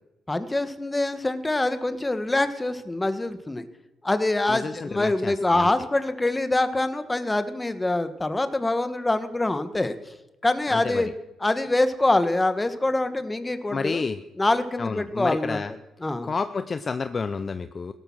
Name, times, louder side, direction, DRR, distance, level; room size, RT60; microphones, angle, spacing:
voice 1, 0.3-3.7 4.0-10.0 10.4-11.1 11.4-14.0 14.4-15.6 16.0-16.3, left 2 dB, 15° left, 11 dB, 1.6 m, -25 dB
voice 2, 4.5-5.7 10.7-11.0 13.7-14.2 14.8-15.7 16.2-17.9, left 4 dB, 35° left, 11 dB, 0.7 m, -30 dB
17.0 x 13.0 x 6.3 m, 0.99 s
cardioid pair, 90°, 0 cm